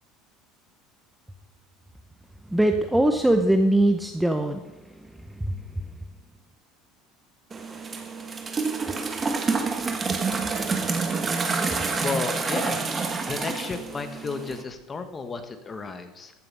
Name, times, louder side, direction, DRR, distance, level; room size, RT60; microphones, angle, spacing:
voice 1, 2.5-6.0, right 1 dB, 5° right, 6 dB, 0.7 m, -23 dB
sound 1, 7.5-14.6, right 4 dB, 20° right, 1.2 m, -28 dB
voice 2, 12.0-12.8 13.3-16.3, left 4 dB, 20° left, 8 dB, 1.3 m, -33 dB
14.5 x 7.9 x 5.5 m, 1.0 s
cardioid pair, 145°, 0 cm